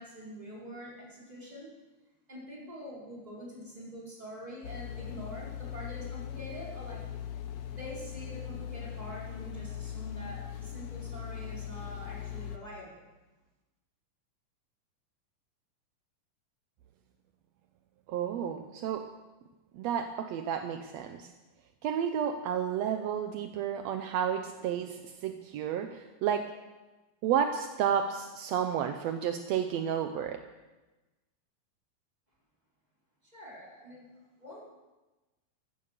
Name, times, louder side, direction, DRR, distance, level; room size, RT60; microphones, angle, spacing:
voice 1, 0.0-1.7 2.3-7.0 7.7-13.1 33.3-34.7, equal, 10° right, -5 dB, 5.1 m, -45 dB
sound 1, 4.6-12.6, left 10 dB, 65° left, 1.7 m, -40 dB
voice 2, 18.1-19.1 19.7-21.3 21.8-26.5 27.2-30.4, right 8 dB, 75° right, 7 dB, 1.6 m, -31 dB
14.5 x 13.5 x 6.8 m, 1.1 s
omnidirectional pair, 3.8 m